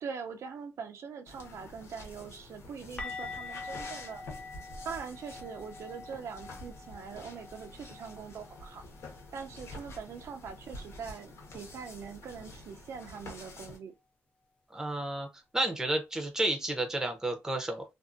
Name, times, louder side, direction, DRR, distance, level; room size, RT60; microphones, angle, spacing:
voice 1, 0.0-4.2 4.8-8.8 9.3-13.9, right 6 dB, 65° right, 0.5 m, -42 dB
sound 1, 1.3-13.8, left 2 dB, 60° left, 1.1 m, -48 dB
sound 2, 3.0-8.8 9.0-9.3 9.6-9.8 13.0-13.1, left 4 dB, 25° left, 0.5 m, -45 dB
voice 2, 14.7-15.3 15.5-17.8, right 1 dB, 10° right, 0.7 m, -31 dB
2.6 x 2.5 x 2.5 m
cardioid pair, 120°, 5 cm